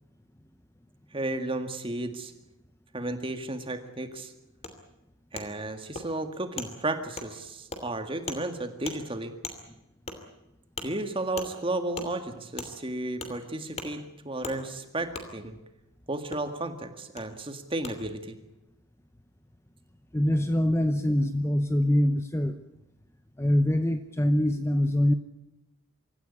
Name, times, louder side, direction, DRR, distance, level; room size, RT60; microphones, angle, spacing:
voice 1, 1.1-2.3 2.9-4.3 5.3-9.3 10.8-15.6 16.1-18.4, right 2 dB, 25° right, 8 dB, 1.9 m, -33 dB
Wood, 4.6-4.7 5.3-5.5 5.9-6.1 6.6-6.7 7.2-7.3 7.7-7.8 8.3-8.4 8.8-9.0 9.4-9.6 10.1-10.2 10.8-10.9 11.4-11.5 11.9-12.1 12.6-12.7 13.2-13.3 13.8-13.9 14.4-14.6 15.1-15.3 16.3-16.4 17.2-17.3 17.8-17.9, left 3 dB, 30° left, 2.8 m, -37 dB
voice 2, 20.1-22.6 23.4-25.1, left 1 dB, 10° left, 9 dB, 0.8 m, -24 dB
25.0 x 14.5 x 9.8 m, 0.94 s
head